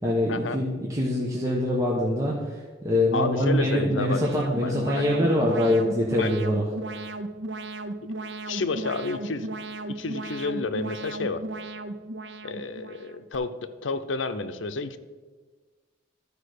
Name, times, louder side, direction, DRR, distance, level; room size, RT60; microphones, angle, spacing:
voice 1, 0.0-6.6, left 1 dB, 15° right, -3 dB, 1.1 m, -24 dB
voice 2, 3.1-4.2 4.6-5.1 6.1-6.3 8.5-9.5 9.9-11.4 12.4-13.5 13.8-15.0, left 3 dB, 80° left, 10 dB, 0.7 m, -30 dB
Alarm, 3.5-13.4, right 2 dB, 70° right, 0.6 m, -36 dB
12.0 x 5.0 x 6.6 m, 1.4 s
head